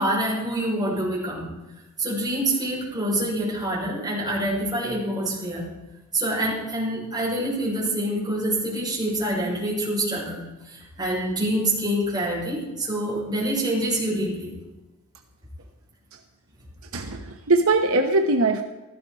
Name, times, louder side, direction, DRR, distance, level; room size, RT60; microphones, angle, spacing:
voice 1, 0.0-1.5 2.0-5.7 6.1-14.5, right 1 dB, 20° right, -5 dB, 6.2 m, -26 dB
voice 2, 16.9-18.6, right 2 dB, 65° right, 4 dB, 1.0 m, -21 dB
16.0 x 14.0 x 4.8 m, 1.1 s
head